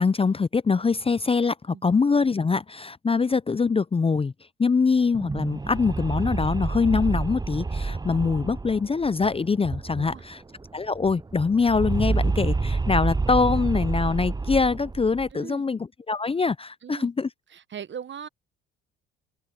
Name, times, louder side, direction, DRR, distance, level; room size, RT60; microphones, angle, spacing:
voice 1, 0.0-4.3 4.6-10.4 10.7-17.3, left 4 dB, 20° left, 0.7 m, -24 dB
sound 1, 5.0-10.3 10.6-10.7 10.9-15.3, right 3 dB, 15° right, 0.8 m, -28 dB
voice 2, 15.3-15.6 16.8-17.1 17.5-18.3, right 8 dB, 40° right, 1.3 m, -39 dB
open air
hypercardioid pair, 60°, 30 cm